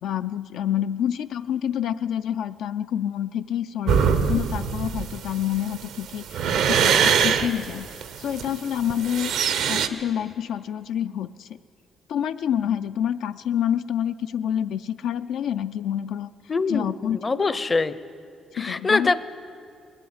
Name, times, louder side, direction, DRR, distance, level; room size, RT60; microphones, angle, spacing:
voice 1, 0.0-9.4 9.7-11.5 12.1-16.3 16.7-17.2 17.5-17.6 18.6-19.1, left 10 dB, 80° left, 10 dB, 0.3 m, -28 dB
sound 1, 3.9-9.9, right 7 dB, 85° right, 0.7 m, -22 dB
voice 2, 16.5-17.9 18.5-19.2, left 4 dB, 30° left, 15 dB, 0.5 m, -23 dB
20.5 x 8.1 x 8.7 m, 2.4 s
cardioid pair, 90°, 0 cm